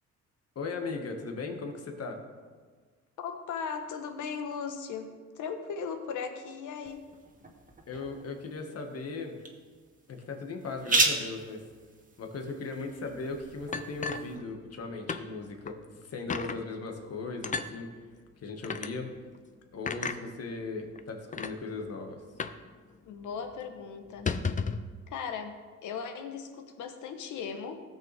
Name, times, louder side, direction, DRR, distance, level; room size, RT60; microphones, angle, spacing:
voice 1, 0.6-2.2 7.9-9.4 10.1-11.6 12.2-15.8 16.0-17.9 18.4-19.1 19.7-22.2, left 3 dB, 55° left, 3 dB, 1.7 m, -38 dB
voice 2, 3.2-7.1 23.1-24.3 25.1-27.8, left 6 dB, 80° left, 6 dB, 1.2 m, -37 dB
sound 1, 6.9-14.4, right 3 dB, 25° right, 1.4 m, -35 dB
sound 2, 13.7-14.8 15.1-15.3 15.7-15.8 16.3-16.6 17.4-17.7 18.6-18.9 19.9-20.2 21.0-21.1 21.3-21.5 22.4-22.7 22.9-23.0 23.4-23.5 24.1-24.9, left 5 dB, 25° left, 0.5 m, -33 dB
17.0 x 6.8 x 3.5 m, 1.5 s
cardioid pair, 90°, 30 cm